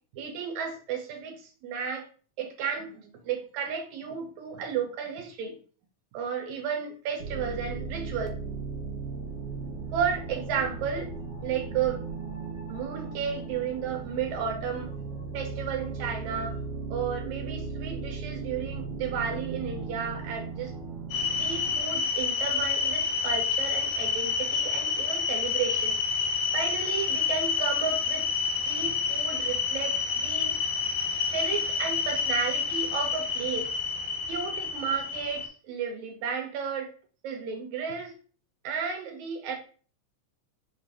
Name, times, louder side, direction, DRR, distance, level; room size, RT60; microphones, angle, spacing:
voice 1, 0.1-2.0 2.4-5.6 6.1-8.3 9.9-11.1 11.4-12.0 12.7-14.9 15.3-16.6 16.9-20.7 21.4-26.0 26.5-28.3 28.7-30.5 31.3-33.7 34.3-36.9 37.2-38.1 38.6-39.6, right 7 dB, 80° right, 4 dB, 1.9 m, -33 dB
sound 1, 7.2-21.8, right 4 dB, 60° right, 2.0 m, -37 dB
sound 2, 21.1-35.5, left 5 dB, 80° left, 1.5 m, -28 dB
5.8 x 2.5 x 3.4 m, 0.40 s
omnidirectional pair, 3.6 m